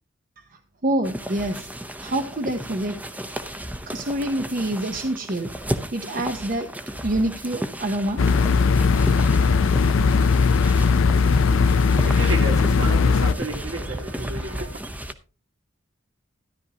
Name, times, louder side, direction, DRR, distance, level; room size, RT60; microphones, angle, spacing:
voice 1, 0.4-1.7 2.0-3.0 3.9-5.5 5.9-6.7 7.0-8.2, right 1 dB, 40° right, 0.7 m, -26 dB
sound 1, 1.0-15.1, right 1 dB, 10° right, 0.7 m, -33 dB
sound 2, 8.2-13.3, left 5 dB, 75° left, 0.5 m, -18 dB
voice 2, 11.4-14.8, right 2 dB, 65° right, 2.2 m, -33 dB
13.0 x 11.0 x 2.8 m
head